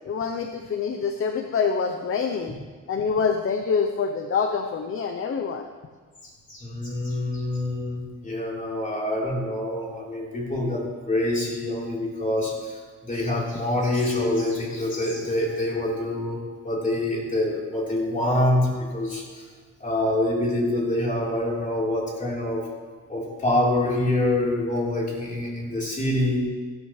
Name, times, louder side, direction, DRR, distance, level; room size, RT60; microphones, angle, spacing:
voice 1, 0.0-2.6 2.9-5.7, left 5 dB, 45° left, 6 dB, 0.8 m, -26 dB
voice 2, 6.2-16.4 16.6-19.5 19.8-22.6 23.1-26.4, left 1 dB, 25° left, -4 dB, 4.0 m, -26 dB
16.0 x 13.0 x 3.3 m, 1.5 s
cardioid pair, 115°, 31 cm